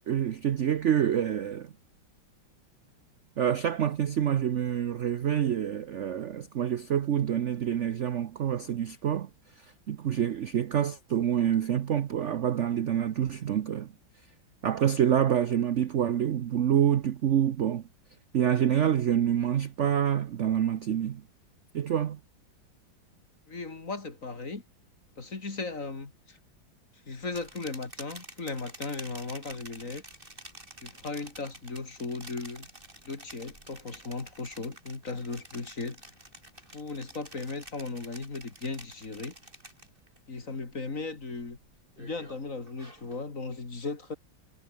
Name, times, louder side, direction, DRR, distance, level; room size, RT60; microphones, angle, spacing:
voice 1, 0.1-1.7 3.4-9.3 9.6-13.9 14.6-17.8 18.3-21.2 21.7-22.2, right 9 dB, 70° right, 0.6 m, -27 dB
voice 2, 23.5-24.6 25.2-26.4 27.1-30.0 30.8-32.7 33.0-36.0 36.7-39.3 40.3-41.6 42.0-44.2, left 3 dB, 40° left, 3.3 m, -37 dB
sound 1, 27.2-40.2 40.5-41.0 41.4-43.3, right 1 dB, 25° right, 8.0 m, -49 dB
omnidirectional pair, 2.2 m